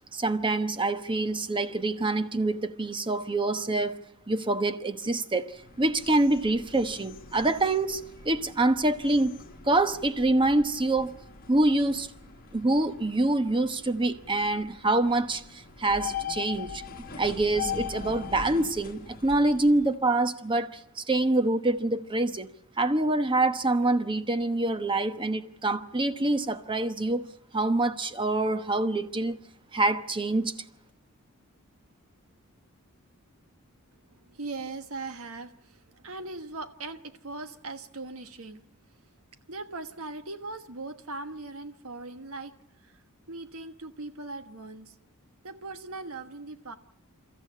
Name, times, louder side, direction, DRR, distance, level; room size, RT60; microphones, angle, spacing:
voice 1, 0.1-4.0 4.3-9.4 9.7-11.1 11.5-12.1 12.5-16.8 17.2-22.5 22.8-27.2 27.5-29.4 29.7-30.5, right 2 dB, 20° right, 1.0 m, -26 dB
sound 1, 5.5-19.9, left 7 dB, 40° left, 1.3 m, -41 dB
voice 2, 34.1-38.6 39.5-42.5 42.8-44.9 45.4-46.8, right 3 dB, 70° right, 1.3 m, -40 dB
29.5 x 14.0 x 8.6 m
head